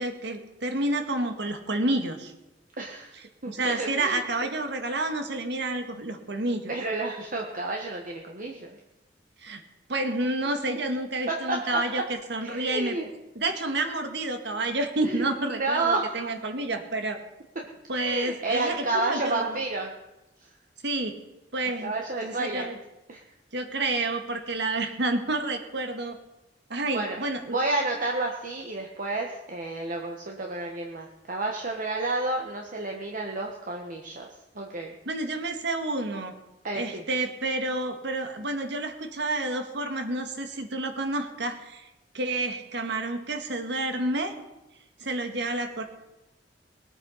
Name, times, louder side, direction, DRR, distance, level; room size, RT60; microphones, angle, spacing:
voice 1, 0.0-2.3 3.5-6.7 9.4-9.6 9.9-13.0 13.4-17.2 17.9-19.6 20.8-21.1 21.5-21.9 22.2-22.8 23.5-26.2 26.7-27.6 35.1-36.3 36.7-41.9 42.1-44.3 45.0-45.8, right 2 dB, 70° right, 6 dB, 1.8 m, -29 dB
voice 2, 2.8-3.1 3.4-4.2 6.7-8.8 11.3-11.8 12.4-13.0 15.0-16.3 17.9-19.9 21.8-22.7 23.1-23.2 26.9-27.2 27.5-34.3 34.5-34.9 36.6-37.0, right 2 dB, 50° right, 0 dB, 1.4 m, -30 dB
20.5 x 9.0 x 5.7 m, 0.96 s
head